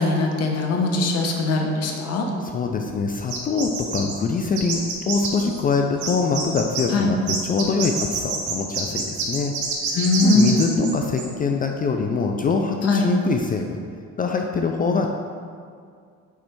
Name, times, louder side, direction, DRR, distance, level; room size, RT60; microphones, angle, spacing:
voice 1, 0.0-2.3 6.9-7.1 9.9-10.9 12.8-13.1, left 2 dB, 55° left, 1 dB, 1.0 m, -21 dB
voice 2, 2.4-9.6 10.2-13.8 14.2-15.1, left 4 dB, 30° left, 3 dB, 0.4 m, -24 dB
sound 1, 3.3-4.1 4.6-5.7 6.0-6.8 7.3-10.9 11.2-11.3, right 5 dB, 75° right, 1.3 m, -27 dB
8.1 x 3.2 x 4.6 m, 2.2 s
cardioid pair, 130°, 30 cm